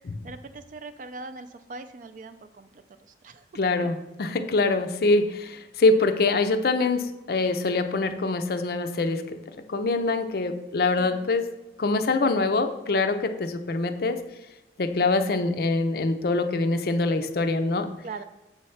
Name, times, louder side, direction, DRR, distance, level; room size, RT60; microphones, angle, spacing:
voice 1, 0.2-3.4 3.8-3.9 11.0-11.3 18.0-18.2, right 3 dB, 45° right, 10 dB, 0.4 m, -41 dB
voice 2, 3.5-9.4 9.7-11.5 11.8-14.2 14.8-17.9, left 3 dB, 55° left, 9 dB, 0.5 m, -24 dB
7.3 x 3.2 x 5.5 m, 1.0 s
head